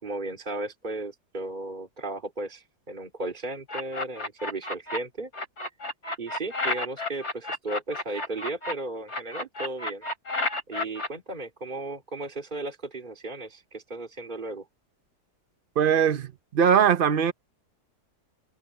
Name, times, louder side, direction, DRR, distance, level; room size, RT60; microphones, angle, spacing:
voice 1, 0.0-5.3 6.2-10.0 10.7-14.7, right 2 dB, 30° right, 3.0 m, -35 dB
sound 1, 3.7-5.0 5.3-8.7 9.1-11.1, left 2 dB, 65° left, 5.5 m, -31 dB
voice 2, 15.8-17.3, right 8 dB, 50° right, 0.7 m, -21 dB
omnidirectional pair, 1.7 m